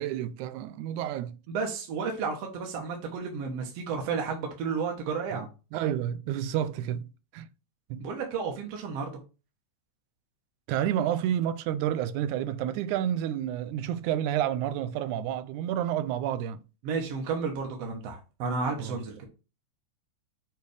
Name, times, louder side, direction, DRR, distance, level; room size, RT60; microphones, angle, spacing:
voice 1, 0.0-1.4 5.7-7.5 7.9-8.0 10.7-16.6 18.8-19.0, right 10 dB, 85° right, 2.0 m, -30 dB
voice 2, 1.5-5.5 8.0-9.2 16.8-19.2, right 5 dB, 65° right, 2.0 m, -32 dB
6.8 x 3.3 x 4.9 m
omnidirectional pair, 3.4 m